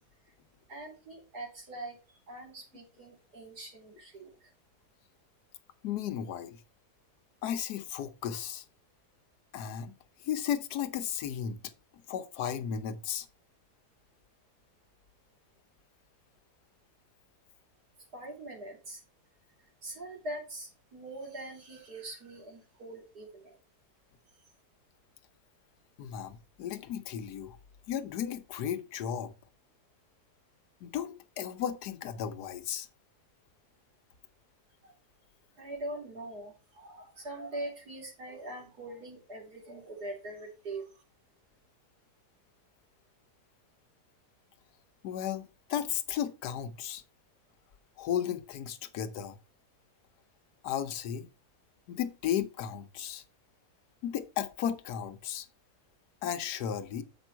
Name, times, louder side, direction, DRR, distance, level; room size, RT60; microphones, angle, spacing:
voice 1, 0.7-4.5 18.1-19.0 19.8-23.6 34.8-34.9 35.6-40.9, right 1 dB, 70° right, 3.4 m, -43 dB
voice 2, 5.8-6.6 7.4-8.6 9.5-9.9 10.2-11.6 12.1-13.3 26.0-27.6 27.9-29.3 30.8-32.9 45.0-47.0 48.0-49.4 50.6-51.3 51.9-53.2 54.0-55.5 56.2-57.0, left 9 dB, 75° left, 1.3 m, -34 dB
7.4 x 5.3 x 4.4 m
omnidirectional pair, 1.8 m